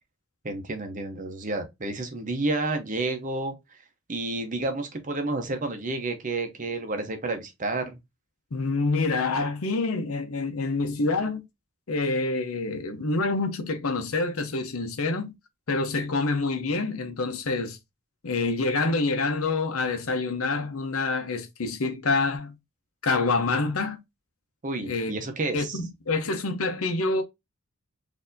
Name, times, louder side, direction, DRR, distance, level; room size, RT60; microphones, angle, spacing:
voice 1, 0.4-3.5 4.1-8.0 24.6-25.8, right 2 dB, 40° right, 0.8 m, -30 dB
voice 2, 8.5-11.4 11.9-15.3 15.7-17.8 18.2-22.5 23.0-24.0 24.8-25.1 25.5-27.2, left 3 dB, 90° left, 0.8 m, -27 dB
4.3 x 2.7 x 2.6 m
head